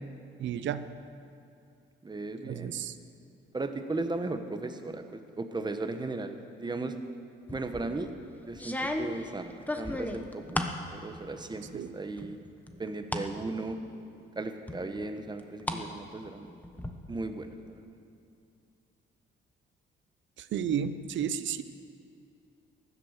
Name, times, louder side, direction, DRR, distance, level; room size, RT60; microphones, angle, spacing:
voice 1, 0.4-0.9 2.4-2.9 11.7-11.9 20.4-21.6, right 8 dB, 70° right, 12 dB, 0.8 m, -32 dB
voice 2, 2.0-2.8 3.5-6.9 7.5-8.1 8.5-9.5 9.8-12.4 12.8-13.8 14.4-16.5 17.1-17.8, right 2 dB, 20° right, 7 dB, 1.2 m, -36 dB
sound 1, 7.5-7.9 8.5-10.8 11.2-11.8 12.2-13.3 13.7-13.8 14.7-15.8 16.1-16.9, left 1 dB, 10° left, 1.1 m, -35 dB
15.5 x 11.0 x 6.6 m, 2.6 s
cardioid pair, 90°, 20 cm